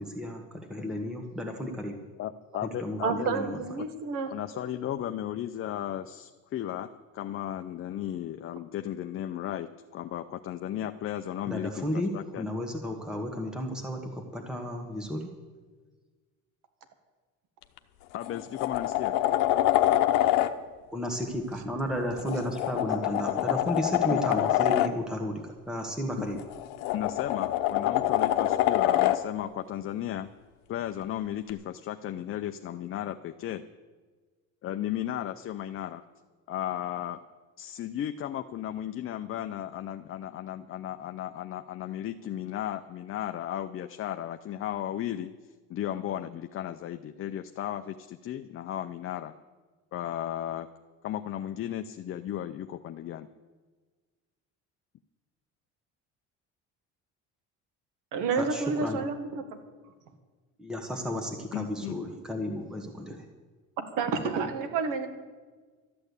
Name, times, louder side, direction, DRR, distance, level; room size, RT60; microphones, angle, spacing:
voice 1, 0.0-2.1 2.8-3.6 11.5-15.3 20.9-26.5 58.3-59.0 60.6-63.2, equal, ahead, 3 dB, 1.4 m, -33 dB
voice 2, 2.2-3.4 3.8-3.9 4.3-12.5 18.1-19.2 24.1-24.2 26.2-26.3 26.9-30.3 30.7-33.6 34.6-36.0 36.5-37.2 37.6-45.3 45.7-49.3 49.9-50.7 51.0-53.3 61.5-62.0, left 11 dB, 40° left, 8 dB, 0.6 m, -35 dB
voice 3, 3.0-4.3 58.1-59.4 63.8-65.1, right 5 dB, 75° right, 8 dB, 1.7 m, -29 dB
sound 1, 17.6-17.8 18.2-20.5 22.2-24.9 26.4-29.2 31.5-31.6, left 13 dB, 80° left, 0.8 m, -25 dB
13.0 x 8.8 x 8.3 m, 1.4 s
cardioid pair, 110°, 32 cm